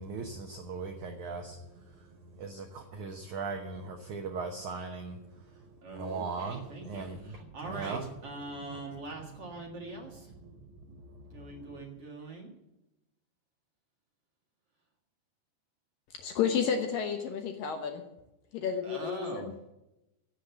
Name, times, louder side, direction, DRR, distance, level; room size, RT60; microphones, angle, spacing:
voice 1, 0.0-5.7 5.9-7.4 7.6-8.1 8.6-8.7 9.2-9.4 10.4-10.7 11.0-11.8, right 4 dB, 70° right, 3 dB, 1.8 m, -39 dB
voice 2, 5.8-10.3 11.3-12.5 18.8-19.5, right 2 dB, 45° right, 0 dB, 2.2 m, -42 dB
voice 3, 16.2-18.0 18.5-19.7, left 7 dB, 70° left, 4 dB, 2.4 m, -31 dB
16.5 x 7.8 x 7.0 m, 0.93 s
omnidirectional pair, 4.9 m